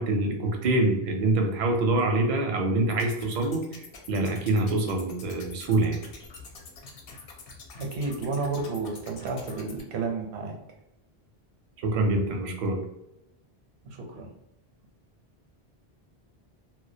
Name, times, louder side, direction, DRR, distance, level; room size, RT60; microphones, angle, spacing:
voice 1, 0.0-6.0 11.8-12.8, right 2 dB, 55° right, 2 dB, 0.5 m, -25 dB
sound 1, 2.9-9.8, left 4 dB, 65° left, 0.7 m, -46 dB
voice 2, 7.8-10.5 13.8-14.3, right 3 dB, 85° right, 2 dB, 0.9 m, -31 dB
2.2 x 2.1 x 2.6 m, 0.88 s
omnidirectional pair, 1.1 m